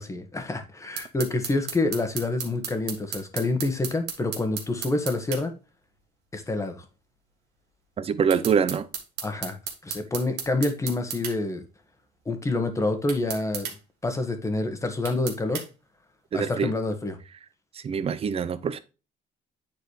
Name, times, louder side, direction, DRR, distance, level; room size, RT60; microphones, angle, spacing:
voice 1, 0.0-5.5 6.3-6.8 9.2-9.6 9.8-11.6 12.2-13.7 14.0-15.6 16.3-17.2, left 2 dB, 15° left, 1.3 m, -27 dB
sound 1, 1.0-5.4 8.3-11.4 13.1-13.8 15.0-15.7, right 7 dB, 85° right, 1.6 m, -34 dB
voice 2, 8.0-8.9 16.3-16.7 17.8-18.8, right 6 dB, 35° right, 0.6 m, -24 dB
9.3 x 4.1 x 3.2 m
cardioid pair, 110°, 17 cm